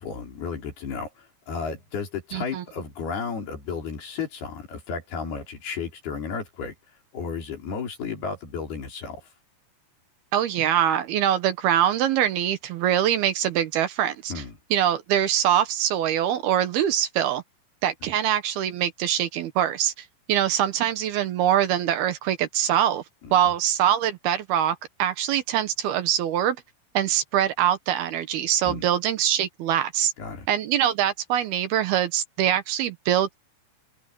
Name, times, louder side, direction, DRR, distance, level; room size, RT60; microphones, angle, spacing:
voice 1, 0.0-6.7 7.1-9.3 14.3-14.6 23.2-23.4 28.6-28.9 30.2-30.5, left 5 dB, 65° left, 6.5 m, -33 dB
voice 2, 2.3-2.6 10.3-14.4 14.7-17.4 17.8-23.0 23.3-26.6 26.9-30.1 30.5-33.3, right 10 dB, 70° right, 2.9 m, -23 dB
omnidirectional pair, 4.9 m